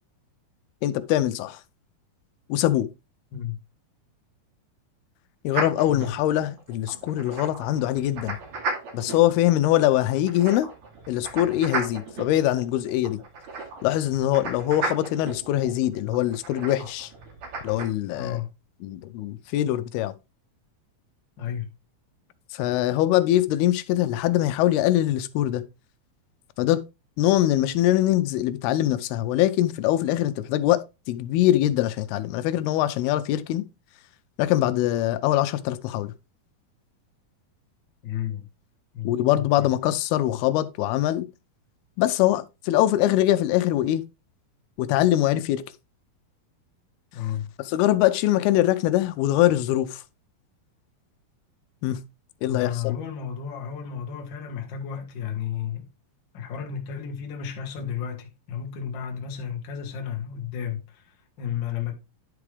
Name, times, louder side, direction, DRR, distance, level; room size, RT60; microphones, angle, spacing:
voice 1, 0.8-1.6 2.5-2.9 5.4-8.4 8.9-10.7 11.1-13.2 13.8-17.1 17.6-18.4 18.8-20.1 22.5-25.6 26.6-26.8 27.2-33.7 34.4-36.1 39.0-41.3 42.0-44.0 44.8-45.6 47.7-50.0 51.8-52.0 52.4-53.0, left 13 dB, 90° left, 2.6 m, -23 dB
sound 1, 5.5-17.9, right 3 dB, 50° right, 3.2 m, -35 dB
voice 2, 18.1-18.5 21.4-21.7 38.0-38.5 38.9-39.7 47.1-47.5 52.5-55.9 56.3-61.9, left 9 dB, 55° left, 1.3 m, -32 dB
10.5 x 4.9 x 3.3 m
omnidirectional pair, 4.4 m